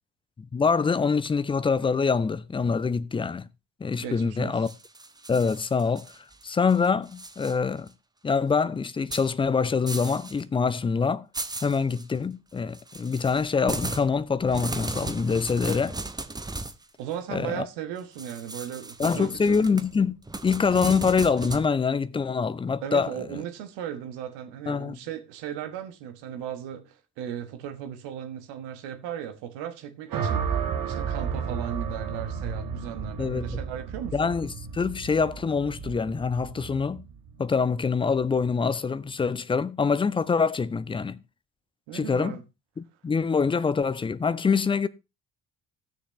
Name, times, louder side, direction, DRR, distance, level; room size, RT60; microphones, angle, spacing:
voice 1, 0.4-3.5 3.8-4.7 5.3-6.1 6.4-7.9 8.2-11.3 11.6-16.0 17.3-17.7 19.0-20.1 20.4-23.1 24.7-25.0 33.2-33.6 34.1-37.0 37.4-41.2 41.9-42.4 42.8-44.9, left 5 dB, 10° left, 0.4 m, -25 dB
voice 2, 4.0-4.7 17.0-19.5 22.8-30.6 30.8-34.3 41.9-42.4, right 9 dB, 60° right, 1.4 m, -36 dB
sound 1, 4.6-6.4 6.7-7.5 7.9-8.0 9.1-9.3 9.9-10.4 10.7-10.8 11.3-12.0 12.7-16.8 18.2-21.7, right 2 dB, 10° right, 0.8 m, -36 dB
sound 2, 30.1-38.4, right 6 dB, 40° right, 1.5 m, -33 dB
16.0 x 6.5 x 3.1 m
figure-of-eight pair, 45°, 49 cm